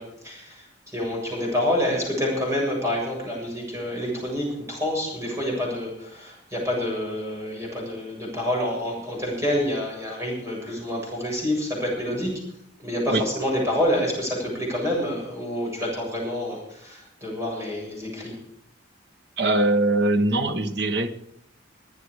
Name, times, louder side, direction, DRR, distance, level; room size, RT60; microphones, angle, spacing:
voice 1, 0.0-12.4 12.8-18.4, left 1 dB, 15° right, -3 dB, 7.4 m, -27 dB
voice 2, 19.4-21.1, right 2 dB, 60° right, 7 dB, 1.4 m, -22 dB
22.5 x 9.9 x 4.9 m, 0.77 s
head